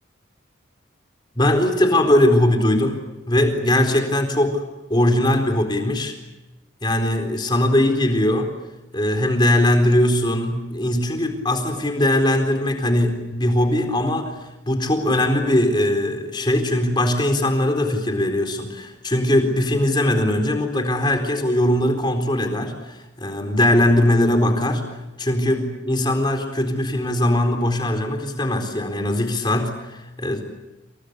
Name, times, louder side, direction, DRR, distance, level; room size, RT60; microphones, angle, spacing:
voice 1, 1.4-3.0 3.3-4.6 4.9-6.1 6.8-8.5 8.9-14.3 14.7-24.9 25.2-30.5, left 1 dB, 25° left, 5 dB, 4.1 m, -20 dB
29.0 x 27.0 x 6.8 m, 1.0 s
head